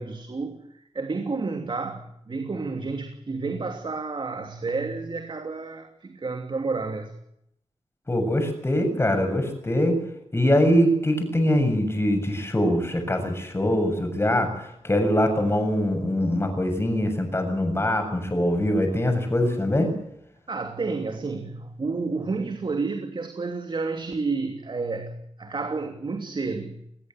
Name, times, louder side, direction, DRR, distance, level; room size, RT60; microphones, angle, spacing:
voice 1, 0.0-7.1 20.5-26.8, right 4 dB, 45° right, 5 dB, 3.0 m, -30 dB
voice 2, 8.1-10.0 10.3-19.9, left 1 dB, 20° left, 6 dB, 7.4 m, -23 dB
21.5 x 20.5 x 8.0 m, 0.75 s
wide cardioid pair, 120°, 11 cm